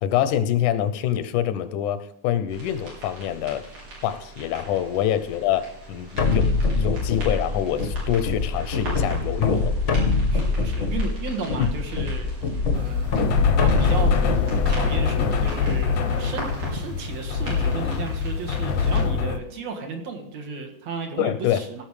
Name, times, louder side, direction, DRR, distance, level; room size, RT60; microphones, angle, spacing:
voice 1, 0.0-3.6 4.0-9.7 11.6-11.7 21.2-21.6, left 10 dB, 85° left, 12 dB, 2.2 m, -25 dB
sound 1, 2.5-19.0, right 2 dB, 85° right, 5.7 m, -40 dB
sound 2, 6.2-15.9, left 3 dB, 50° left, 0.8 m, -24 dB
voice 2, 10.3-12.3 12.7-13.1 13.6-21.8, right 4 dB, 65° right, 3 dB, 2.6 m, -34 dB
sound 3, 12.7-19.4, left 6 dB, 70° left, 1.5 m, -24 dB
17.0 x 6.2 x 4.9 m, 0.83 s
omnidirectional pair, 3.5 m